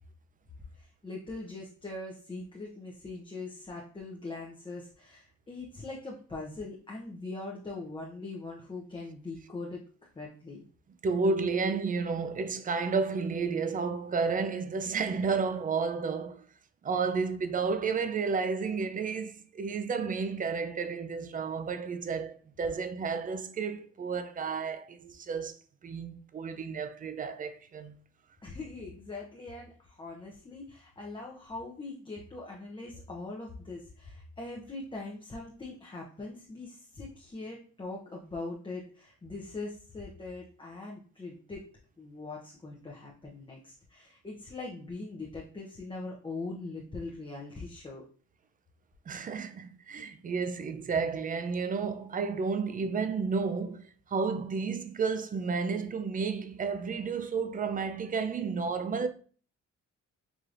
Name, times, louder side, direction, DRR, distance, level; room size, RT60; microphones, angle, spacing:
voice 1, 0.8-9.8 10.1-10.6 28.4-41.7 42.0-48.0, left 3 dB, 15° left, 0.7 m, -41 dB
voice 2, 11.0-16.4 16.8-25.6 25.8-28.0 49.1-59.1, right 5 dB, 30° right, 0.4 m, -31 dB
4.9 x 2.9 x 2.5 m
cardioid pair, 90°, 30 cm